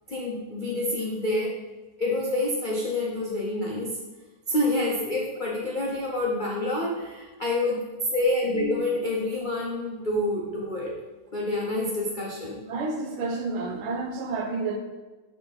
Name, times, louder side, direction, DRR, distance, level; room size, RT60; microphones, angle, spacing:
voice 1, 0.1-1.5 2.0-4.0 4.5-7.8 8.1-10.9 11.3-12.6, left 2 dB, 70° left, -3 dB, 0.4 m, -27 dB
voice 2, 12.7-14.8, right 3 dB, 90° right, 4 dB, 1.7 m, -30 dB
8.3 x 3.9 x 3.9 m, 1.2 s
omnidirectional pair, 2.2 m